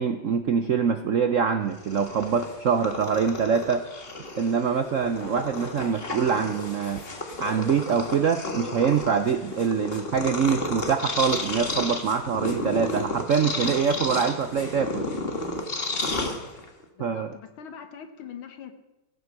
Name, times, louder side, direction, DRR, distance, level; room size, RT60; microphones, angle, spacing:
voice 1, 0.0-3.8 4.4-7.0 7.4-15.1 17.0-17.3, right 6 dB, 70° right, 8 dB, 0.7 m, -24 dB
Purr, 1.7-16.8, left 2 dB, 30° left, 1.5 m, -32 dB
voice 2, 16.9-18.7, left 7 dB, 85° left, 8 dB, 2.1 m, -42 dB
16.0 x 9.0 x 6.6 m, 1.0 s
omnidirectional pair, 2.2 m